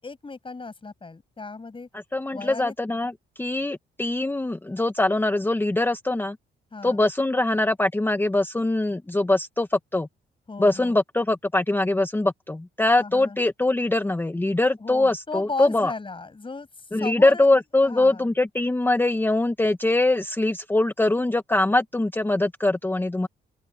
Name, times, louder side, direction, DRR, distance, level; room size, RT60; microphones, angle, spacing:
voice 1, 0.0-1.9 2.3-2.7 6.7-7.0 10.5-11.0 13.0-13.4 14.8-17.5 17.8-18.3, left 3 dB, 25° left, 7.8 m, -36 dB
voice 2, 2.1-6.4 6.8-10.1 10.6-15.9 16.9-23.3, left 2 dB, 10° left, 1.0 m, -23 dB
open air
cardioid pair, 90°, 20 cm